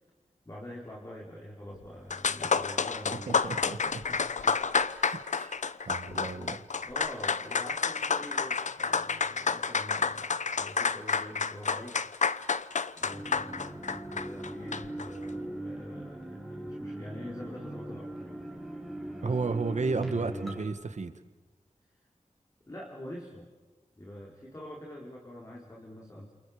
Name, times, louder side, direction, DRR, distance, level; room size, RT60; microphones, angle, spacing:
voice 1, 0.4-3.6 4.1-5.1 6.0-12.0 12.9-18.6 19.2-19.5 22.7-23.5 24.0-26.3, left 1 dB, 25° left, -2 dB, 4.3 m, -45 dB
sound 1, 1.8-1.9 2.1-15.1, left 5 dB, 80° left, 0.8 m, -30 dB
voice 2, 3.3-3.8 5.0-5.6 5.9-6.6 19.2-21.2, right 4 dB, 75° right, 9 dB, 1.8 m, -33 dB
sound 2, 13.1-20.6, right 1 dB, ahead, 5.4 m, -40 dB
29.5 x 28.0 x 5.1 m, 1.3 s
wide cardioid pair, 95°, 12 cm